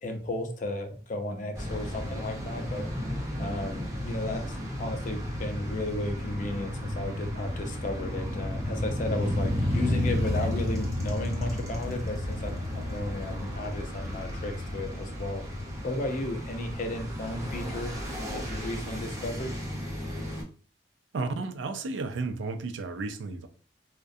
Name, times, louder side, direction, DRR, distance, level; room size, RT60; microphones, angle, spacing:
voice 1, 0.0-15.4 15.8-17.9 18.3-19.5, left 1 dB, 45° left, 0.5 m, -34 dB
sound 1, 1.5-20.4, left 1 dB, 15° right, 0.6 m, -33 dB
voice 2, 21.1-23.5, right 3 dB, 85° right, 0.4 m, -33 dB
2.3 x 2.1 x 2.6 m
head